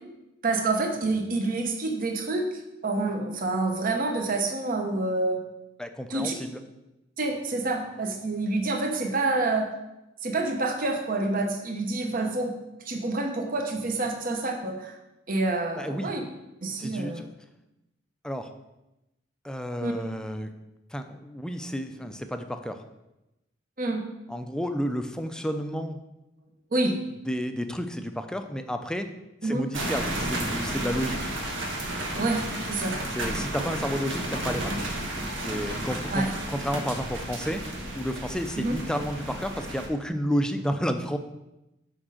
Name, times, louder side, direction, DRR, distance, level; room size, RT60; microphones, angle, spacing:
voice 1, 0.4-2.5 2.8-5.4 6.1-6.3 7.2-9.7 10.2-12.5 12.8-14.9 15.3-16.2 16.6-17.2 19.8-20.0 23.8-24.0 26.7-27.0 29.4-29.6 32.2-32.9 36.1-36.3 38.6-38.7, right 2 dB, 45° right, 3 dB, 1.0 m, -27 dB
voice 2, 5.8-6.6 15.8-16.1 16.8-17.3 18.2-18.5 19.4-20.5 20.9-22.8 24.3-26.0 27.3-29.1 29.4-31.2 33.1-34.7 35.4-37.6 37.9-41.2, equal, 5° left, 7 dB, 0.5 m, -31 dB
sound 1, 29.7-39.9, right 1 dB, 75° right, 1.2 m, -32 dB
6.2 x 5.3 x 6.3 m, 0.95 s
head